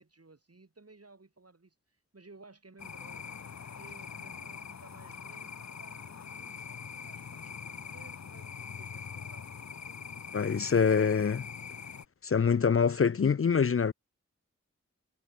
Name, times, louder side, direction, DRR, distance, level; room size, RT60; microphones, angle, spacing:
voice 1, 0.0-3.4 3.8-9.5, right 3 dB, 55° right, 7.6 m, -57 dB
sound 1, 2.8-12.0, left 6 dB, 70° left, 0.9 m, -43 dB
voice 2, 10.3-11.5 12.2-13.9, left 6 dB, 50° left, 0.5 m, -25 dB
wide cardioid pair, 70°, 29 cm